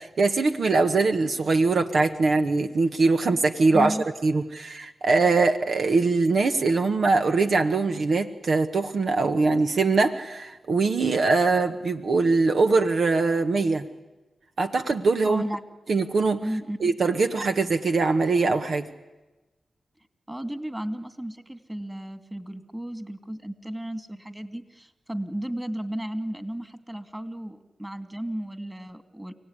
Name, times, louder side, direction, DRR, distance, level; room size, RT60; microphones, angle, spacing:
voice 1, 0.0-3.9 4.2-13.9 14.6-15.4 15.9-16.4 16.8-18.9, right 3 dB, 70° right, 6 dB, 1.2 m, -22 dB
voice 2, 3.7-4.1 15.2-15.6 16.4-17.0 20.3-29.3, right 1 dB, 15° right, 9 dB, 2.5 m, -34 dB
30.0 x 17.5 x 9.8 m, 1.1 s
cardioid pair, 45°, 0 cm